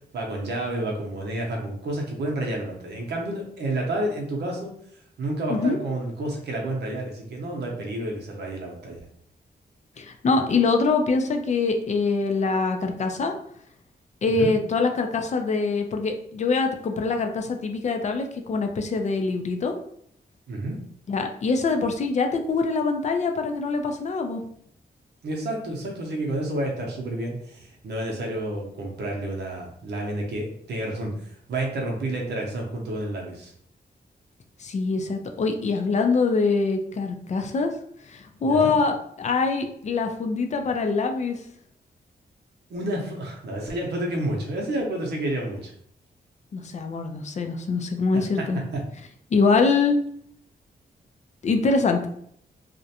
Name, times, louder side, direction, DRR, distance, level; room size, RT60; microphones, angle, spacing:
voice 1, 0.1-4.7 5.2-9.0 14.3-14.5 20.5-20.8 25.2-33.5 38.4-38.7 42.7-45.7 48.1-48.4 48.7-48.8, right 1 dB, 80° right, 0 dB, 0.7 m, -30 dB
voice 2, 10.0-13.3 14.2-19.7 21.1-24.4 34.6-37.7 38.1-41.4 46.5-48.6 49.3-50.0 51.4-52.1, left 4 dB, 45° left, 5 dB, 0.4 m, -24 dB
2.4 x 2.1 x 2.7 m, 0.67 s
wide cardioid pair, 100°, 17 cm